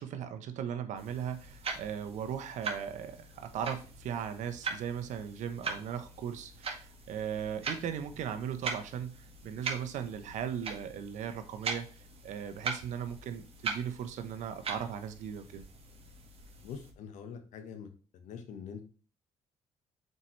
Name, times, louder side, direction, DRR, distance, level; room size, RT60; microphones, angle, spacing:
voice 1, 0.0-15.7, right 8 dB, 80° right, 8 dB, 1.0 m, -38 dB
sound 1, 1.0-16.9, right 4 dB, 50° right, 1.8 m, -42 dB
voice 2, 16.6-18.8, left 7 dB, 80° left, 7 dB, 1.3 m, -45 dB
6.7 x 4.7 x 3.2 m, 0.38 s
cardioid pair, 70°, 12 cm